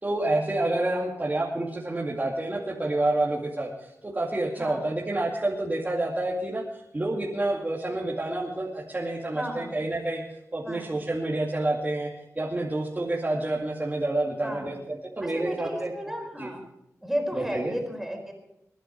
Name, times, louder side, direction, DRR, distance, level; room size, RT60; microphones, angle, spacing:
voice 1, 0.0-12.1 12.4-15.9 16.4-16.5 17.3-17.7, right 2 dB, 30° right, -4 dB, 2.4 m, -28 dB
voice 2, 4.6-4.9 9.3-9.7 10.6-10.9 14.4-14.8 15.2-16.6 17.0-18.3, equal, 5° right, 2 dB, 4.5 m, -34 dB
22.5 x 11.0 x 4.7 m, 0.83 s
wide cardioid pair, 75°, 6 cm